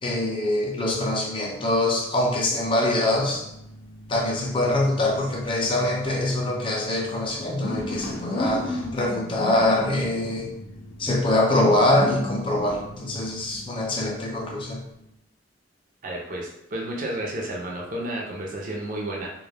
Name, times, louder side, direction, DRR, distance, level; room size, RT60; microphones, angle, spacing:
voice 1, 0.0-3.5 4.1-10.5 11.0-14.8, left 1 dB, 30° left, -1 dB, 0.5 m, -24 dB
sound 1, 1.9-15.0, left 1 dB, 80° left, 0.5 m, -36 dB
voice 2, 16.0-19.3, right 1 dB, 45° right, -2 dB, 0.5 m, -31 dB
2.2 x 2.1 x 3.2 m, 0.80 s
head